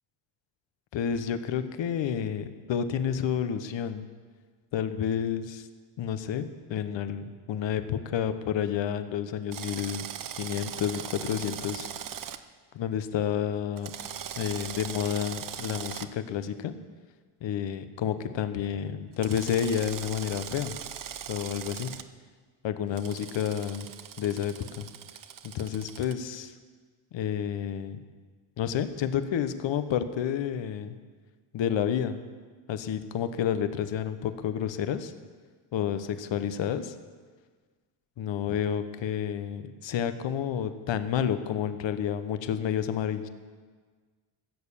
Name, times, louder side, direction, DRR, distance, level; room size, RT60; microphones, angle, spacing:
voice 1, 0.9-4.1 4.7-5.7 6.0-10.1 10.4-11.9 12.7-13.9 14.4-16.7 17.4-20.8 21.3-21.9 22.6-23.9 24.2-24.9 25.4-26.5 27.1-28.0 28.6-31.0 31.5-32.2 32.7-35.1 35.7-36.9 38.2-43.3, left 9 dB, 60° left, 11 dB, 1.1 m, -30 dB
Drill, 9.5-12.4 13.8-16.1 19.2-22.0 23.0-26.1, right 9 dB, 40° right, 0.7 m, -40 dB
15.5 x 6.7 x 7.1 m, 1.5 s
cardioid pair, 85°, 50 cm